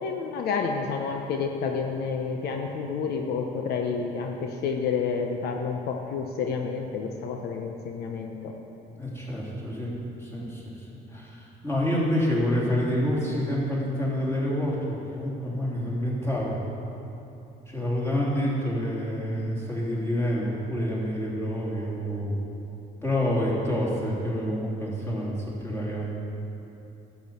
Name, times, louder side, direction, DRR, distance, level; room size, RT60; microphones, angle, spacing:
voice 1, 0.0-8.5, left 5 dB, 70° left, 3 dB, 0.9 m, -29 dB
voice 2, 8.9-10.8 11.1-16.6 17.7-22.4 23.0-26.0, equal, 15° left, -6 dB, 3.1 m, -28 dB
12.0 x 7.1 x 6.9 m, 2.8 s
cardioid pair, 110°, 17 cm